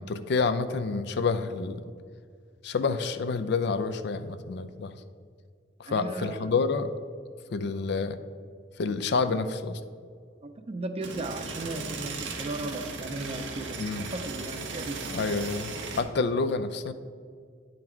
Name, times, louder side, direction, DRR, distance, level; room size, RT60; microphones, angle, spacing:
voice 1, 0.0-1.9 2.6-5.0 5.8-6.9 7.5-8.2 8.8-9.8 13.8-14.1 15.1-16.9, left 4 dB, 65° left, 11 dB, 0.4 m, -28 dB
voice 2, 5.9-6.5 10.4-15.1, right 2 dB, 35° right, 7 dB, 0.5 m, -36 dB
sound 1, 11.0-16.0, right 3 dB, 90° right, 0.9 m, -37 dB
9.6 x 3.9 x 4.4 m, 2.1 s
head